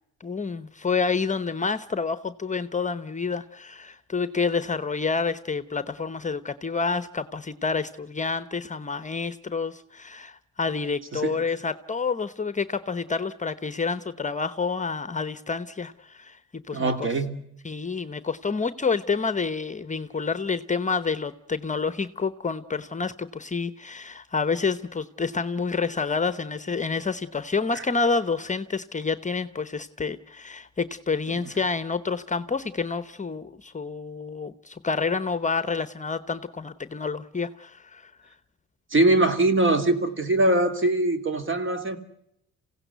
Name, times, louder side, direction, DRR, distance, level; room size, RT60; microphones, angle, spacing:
voice 1, 0.2-17.1 17.6-38.1, left 4 dB, 25° left, 14 dB, 0.9 m, -28 dB
voice 2, 16.7-17.4 27.7-27.8 38.9-42.0, right 2 dB, 40° right, 8 dB, 2.7 m, -22 dB
27.5 x 16.5 x 8.2 m, 0.78 s
cardioid pair, 90°, 30 cm